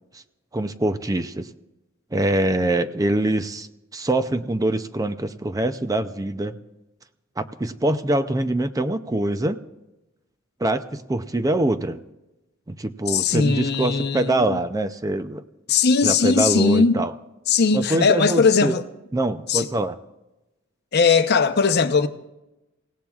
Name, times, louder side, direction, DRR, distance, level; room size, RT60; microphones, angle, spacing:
voice 1, 0.5-1.5 2.1-6.6 7.4-9.6 10.6-12.0 12.7-15.4 16.0-17.1 17.7-18.7 19.1-20.0, right 1 dB, 20° right, 0.5 m, -24 dB
voice 2, 13.1-14.6 15.7-17.0 17.5-18.8 19.5-19.7 20.9-22.1, left 5 dB, 55° left, 0.8 m, -19 dB
28.0 x 17.0 x 2.4 m
head